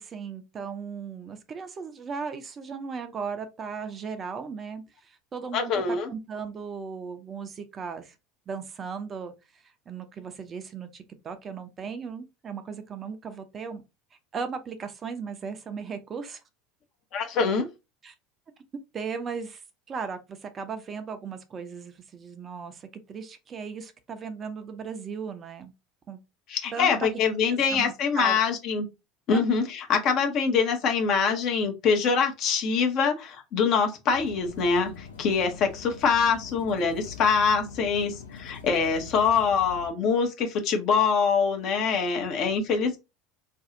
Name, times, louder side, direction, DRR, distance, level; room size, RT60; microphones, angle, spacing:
voice 1, 0.0-5.8 6.1-8.2 8.5-13.8 14.1-16.4 18.0-18.1 18.9-25.7 26.1-26.2 26.7-27.1 27.5-28.4 29.3-29.4, right 5 dB, 30° right, 0.5 m, -37 dB
voice 2, 5.5-6.1 17.1-17.7 26.5-28.9 29.3-43.0, left 5 dB, 45° left, 0.8 m, -24 dB
sound 1, 34.1-39.9, left 5 dB, 75° left, 0.7 m, -44 dB
2.6 x 2.3 x 3.8 m
figure-of-eight pair, 70°, 0 cm